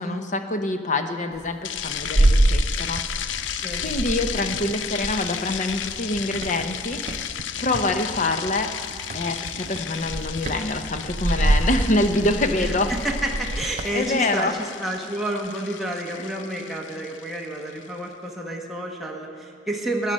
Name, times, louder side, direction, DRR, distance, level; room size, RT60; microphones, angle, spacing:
voice 1, 0.0-3.0 3.8-8.7 9.1-12.9 13.9-14.5, left 2 dB, 40° left, 7 dB, 0.8 m, -25 dB
sound 1, 1.4-3.4 3.7-6.0 6.3-7.9 9.0-9.4 9.8-14.0, right 1 dB, 40° right, 0.7 m, -25 dB
sound 2, 1.6-17.9, left 10 dB, 80° left, 0.5 m, -34 dB
sound 3, 2.7-14.2, right 3 dB, 75° right, 0.5 m, -43 dB
voice 2, 12.6-20.1, right 1 dB, ahead, -2 dB, 1.2 m, -30 dB
19.5 x 9.1 x 5.4 m, 2.3 s
head